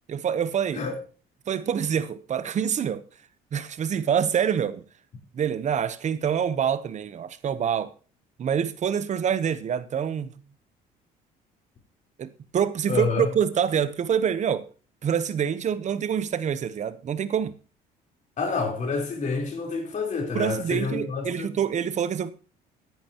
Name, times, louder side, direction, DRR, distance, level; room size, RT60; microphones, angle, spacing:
voice 1, 0.1-0.8 1.5-3.0 3.5-4.8 5.3-7.9 8.4-10.3 12.2-14.6 15.0-17.5 20.3-22.3, right 8 dB, 45° right, 0.9 m, -26 dB
voice 2, 12.9-13.3 18.4-21.6, left 4 dB, 45° left, 3.8 m, -28 dB
15.0 x 10.5 x 2.9 m
cardioid pair, 110°, 17 cm